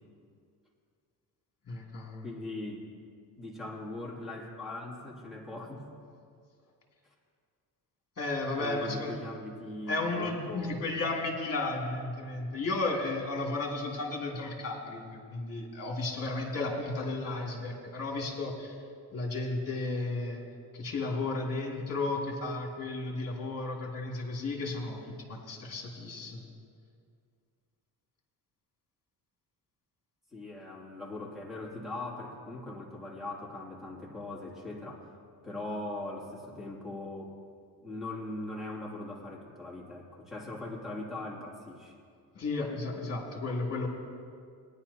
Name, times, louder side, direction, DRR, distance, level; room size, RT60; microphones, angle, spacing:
voice 1, 1.7-2.3 8.2-9.1 9.9-18.8 19.1-20.4 20.7-25.0 25.3-26.4 42.3-43.9, left 2 dB, 40° left, -1 dB, 2.5 m, -33 dB
voice 2, 2.2-2.9 3.4-5.9 7.0-7.1 8.6-10.9 30.3-35.1 35.4-37.4 37.8-41.9, left 2 dB, ahead, -6 dB, 2.5 m, -40 dB
19.0 x 10.5 x 2.8 m, 2.2 s
cardioid pair, 115°, 40 cm